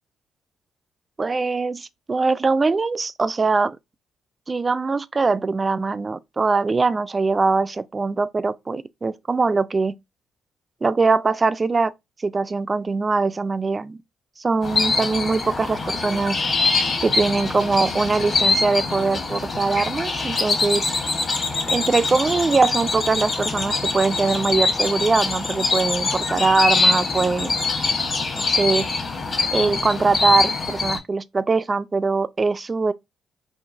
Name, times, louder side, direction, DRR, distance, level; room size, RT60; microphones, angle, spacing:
voice 1, 1.2-3.8 4.5-9.9 10.8-11.9 12.2-14.0 14.4-16.4 17.0-20.9 21.7-27.6 28.4-28.9 29.5-32.9, right 4 dB, 30° right, 0.3 m, -22 dB
sound 1, 14.6-31.0, left 3 dB, 40° left, 1.3 m, -23 dB
4.6 x 2.8 x 2.6 m
cardioid pair, 90°, 0 cm